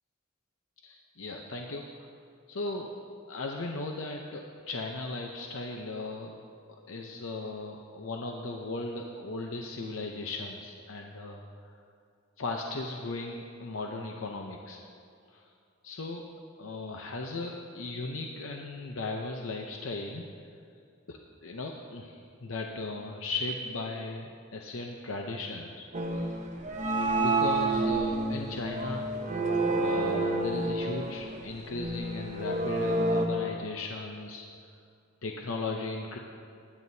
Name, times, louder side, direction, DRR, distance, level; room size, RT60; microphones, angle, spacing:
voice 1, 0.8-2.1 2.5-2.9 3.3-6.4 6.9-11.7 12.4-14.8 15.3-15.4 15.8-16.2 16.6-20.3 21.1-25.8 26.1-26.3 27.1-29.1 29.8-34.5 35.2-36.2, left 3 dB, 75° left, 1 dB, 0.7 m, -37 dB
sound 1, 25.9-33.3, right 2 dB, 35° right, 0.9 m, -29 dB
19.5 x 9.8 x 2.8 m, 2.4 s
head